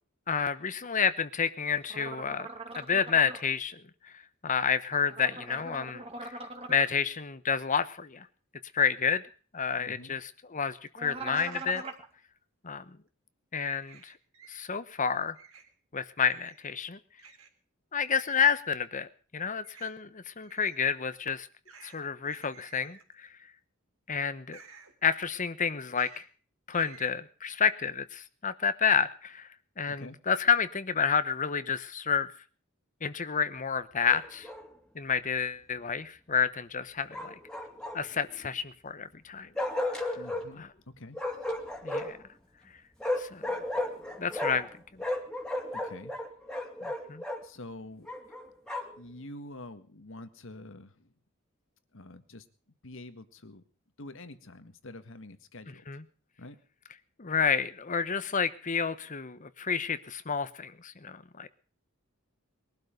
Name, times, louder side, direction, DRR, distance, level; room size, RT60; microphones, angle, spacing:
voice 1, 0.3-2.5 2.7-6.3 6.7-8.3 8.7-9.2 9.5-11.8 12.6-12.8 13.5-14.1 14.5-15.3 15.9-17.0 17.9-21.5 21.8-23.3 24.1-24.6 25.0-26.2 26.7-29.5 29.8-32.3 33.0-34.5 34.9-37.3 37.9-39.5 39.8-40.2 40.6-40.7 41.8-42.2 43.2-43.5 44.2-44.7 44.9-45.0 46.8-47.2 55.9-56.0 57.2-61.5, left 6 dB, 40° left, 13 dB, 1.0 m, -30 dB
sound 1, 1.9-3.4 5.1-6.9 11.0-12.0, right 3 dB, 30° right, 2.4 m, -41 dB
voice 2, 9.8-10.2 29.9-30.2 40.1-41.2 45.7-46.2 47.4-48.1 49.0-51.1 51.9-52.5 52.8-53.6 54.0-55.8 56.4-56.6, left 1 dB, 65° left, 11 dB, 1.8 m, -46 dB
sound 2, 11.3-11.9 13.8-14.6 15.3-15.7 16.3-16.7 17.2-17.5 18.0-18.6 19.6-19.9 20.4-20.8 21.6-22.0 22.2-23.1 24.5-24.9 25.9-26.2 26.7-27.1, right 6 dB, 90° right, 3.6 m, -52 dB
Bark, 34.0-34.7 37.1-38.2 39.6-40.5 41.1-42.2 43.0-44.7 45.0-47.4 48.1-49.0, left 1 dB, 5° left, 2.6 m, -34 dB
21.5 x 12.0 x 5.3 m, 0.41 s
head